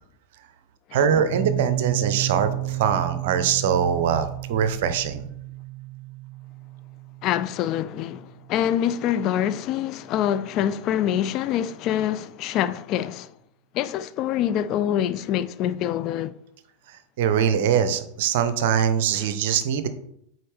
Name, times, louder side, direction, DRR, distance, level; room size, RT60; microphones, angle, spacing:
voice 1, 0.9-5.2 16.9-19.9, right 8 dB, 55° right, 0.6 m, -23 dB
Piano, 1.3-8.7, right 14 dB, 70° left, 2.2 m, -32 dB
voice 2, 7.2-13.3 13.7-16.3 19.1-19.2, left 10 dB, 40° left, 0.3 m, -25 dB
8.4 x 4.1 x 3.3 m
figure-of-eight pair, 90°, 0 cm